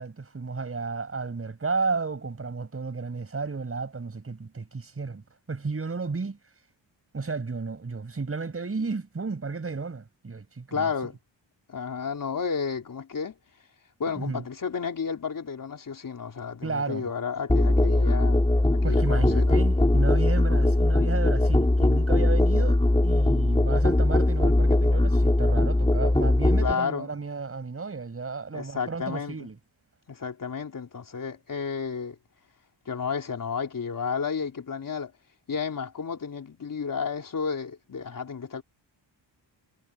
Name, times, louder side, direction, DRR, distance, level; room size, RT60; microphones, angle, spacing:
voice 1, 0.0-6.4 7.1-10.9 14.2-14.4 16.6-17.1 18.8-22.8 23.0-29.6, right 4 dB, 30° right, 7.0 m, -33 dB
voice 2, 10.7-11.2 11.7-13.3 14.0-19.7 26.6-27.1 28.5-29.5 30.1-32.2 32.9-35.1 35.5-38.6, left 6 dB, 45° left, 4.0 m, -32 dB
Musical instrument, 17.5-26.7, left 1 dB, 10° left, 3.8 m, -21 dB
wide cardioid pair, 140°, 45 cm